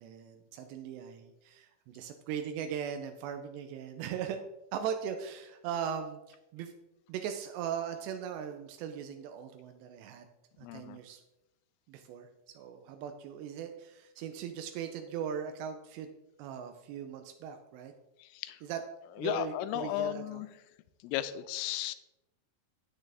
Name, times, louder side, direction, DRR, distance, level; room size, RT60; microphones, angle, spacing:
voice 1, 0.0-4.4 4.7-6.7 7.1-10.3 10.6-11.2 11.9-12.3 12.5-16.1 16.4-17.9 18.6-18.8 19.2-20.4, right 8 dB, 90° right, 6 dB, 2.4 m, -39 dB
voice 2, 10.6-11.0 18.2-18.6 19.2-20.5 21.0-22.0, left 13 dB, 85° left, 13 dB, 3.2 m, -35 dB
9.9 x 8.9 x 3.4 m, 0.95 s
omnidirectional pair, 5.7 m